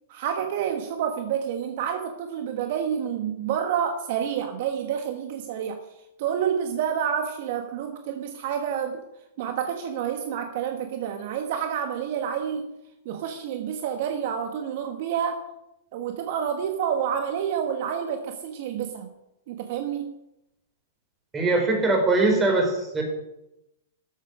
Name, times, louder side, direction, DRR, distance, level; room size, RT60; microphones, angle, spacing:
voice 1, 0.1-5.8 6.2-9.0 9.4-12.7 13.0-15.4 15.9-19.1 19.5-20.1, right 8 dB, 55° right, 6 dB, 1.3 m, -28 dB
voice 2, 21.3-23.0, right 2 dB, 15° right, 1 dB, 4.6 m, -21 dB
13.0 x 8.1 x 6.5 m, 0.87 s
hypercardioid pair, 115°, 0 cm